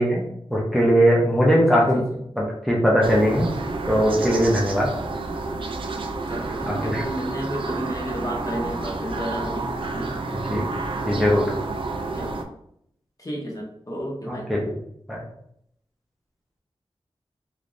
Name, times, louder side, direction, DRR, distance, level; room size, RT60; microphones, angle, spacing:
voice 1, 0.0-2.1 2.4-3.5 3.9-4.9 6.6-7.0 10.3-10.7 11.0-11.4 14.2-14.7 15.1-15.2, equal, ahead, -4 dB, 0.7 m, -20 dB
voice 2, 1.5-2.0 6.3-9.7 9.9-10.1 12.1-12.4 13.2-14.5, equal, 35° left, -2 dB, 1.0 m, -32 dB
sound 1, 3.0-12.4, right 3 dB, 60° right, 0.4 m, -30 dB
3.3 x 3.1 x 2.5 m, 0.72 s
wide cardioid pair, 105°, 10 cm